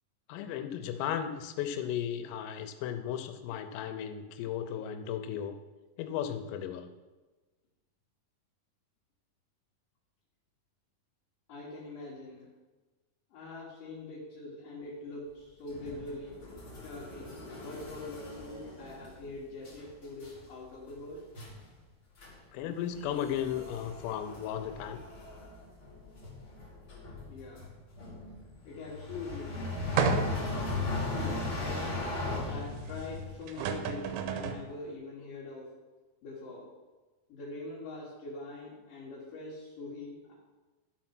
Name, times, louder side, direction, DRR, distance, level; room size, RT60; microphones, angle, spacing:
voice 1, 0.3-5.5 6.0-6.9 22.5-25.0, left 9 dB, 85° left, 7 dB, 3.3 m, -35 dB
voice 2, 11.5-12.5 13.3-16.3 16.8-21.2 23.0-23.1 27.2-27.6 28.6-29.6 31.1-31.8 32.5-35.7 36.2-36.7 37.3-40.3, left 2 dB, 60° left, -7 dB, 2.5 m, -43 dB
sound 1, 15.7-19.3 19.6-19.9 20.2-20.5 20.9-21.0 21.3-21.6 22.2-22.3 22.6-33.3, left 3 dB, 30° left, 2.1 m, -38 dB
sound 2, 30.0-30.6 31.2-31.3 33.1-33.2 33.5-34.7, right 7 dB, 85° right, 3.0 m, -31 dB
13.0 x 4.5 x 6.0 m, 1.2 s
omnidirectional pair, 5.9 m